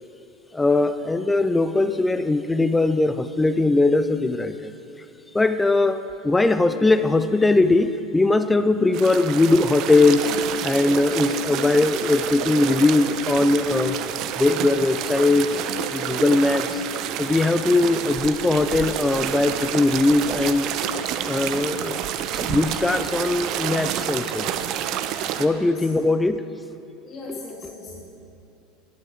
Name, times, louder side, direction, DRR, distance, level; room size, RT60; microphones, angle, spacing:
voice 1, 0.5-4.7 5.3-10.3 10.6-14.0 14.4-15.6 15.9-16.8 17.2-20.7 21.0-22.0 22.3-24.5 25.4-26.5, left 2 dB, 10° left, 11 dB, 0.5 m, -20 dB
sound 1, 8.9-25.5, right 10 dB, 55° right, 0.7 m, -29 dB
voice 2, 25.3-25.9 27.0-28.0, left 2 dB, 35° left, -5 dB, 2.9 m, -39 dB
11.5 x 9.1 x 7.7 m, 2.7 s
hypercardioid pair, 90°, 0 cm